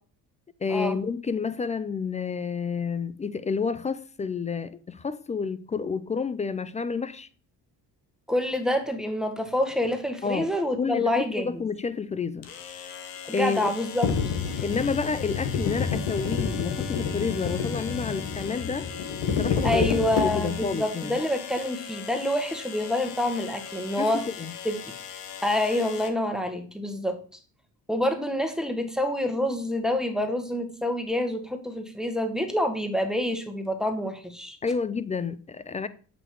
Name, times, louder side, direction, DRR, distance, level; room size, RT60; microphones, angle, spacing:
voice 1, 0.6-7.3 10.2-10.5 10.8-12.5 13.3-13.7 14.6-18.9 19.4-19.9 20.2-21.2 24.0-24.5 34.6-35.9, left 5 dB, 15° left, 0.3 m, -30 dB
voice 2, 8.3-11.5 13.3-14.1 14.5-14.6 19.6-24.2 24.6-24.8 25.4-27.2 27.9-34.6, left 1 dB, ahead, 1.3 m, -27 dB
sound 1, 10.4-10.5 12.4-26.1, left 8 dB, 85° left, 0.8 m, -40 dB
sound 2, 14.0-20.7, left 6 dB, 60° left, 1.1 m, -29 dB
7.8 x 3.0 x 4.6 m
hypercardioid pair, 50°, 47 cm